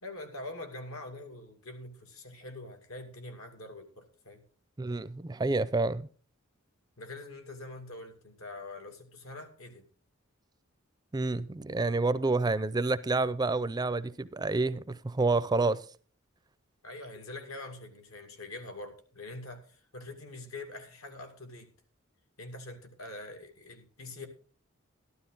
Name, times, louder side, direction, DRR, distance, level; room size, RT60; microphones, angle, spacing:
voice 1, 0.0-4.4 7.0-9.9 16.8-21.7 22.4-24.3, left 2 dB, 80° left, 2.3 m, -44 dB
voice 2, 4.8-6.1 11.1-15.8, right 3 dB, 20° right, 0.4 m, -28 dB
12.5 x 12.0 x 3.9 m
head